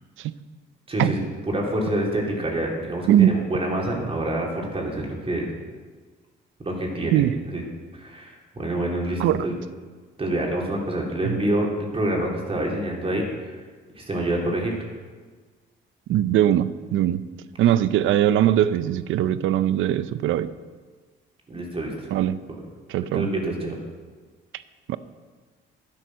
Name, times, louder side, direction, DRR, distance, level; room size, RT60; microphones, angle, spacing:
voice 1, 0.9-5.5 6.6-7.2 7.5-7.6 8.0-9.5 10.2-13.6 13.9-14.7 21.5-22.1 23.1-23.7, right 1 dB, 30° right, -2 dB, 3.6 m, -27 dB
voice 2, 3.1-3.5 7.1-7.4 9.2-9.5 11.2-11.4 16.1-17.3 17.6-20.5 22.1-22.4 22.9-23.3 24.9-25.0, right 11 dB, 85° right, 15 dB, 0.6 m, -21 dB
11.0 x 11.0 x 6.2 m, 1.4 s
cardioid pair, 90°, 20 cm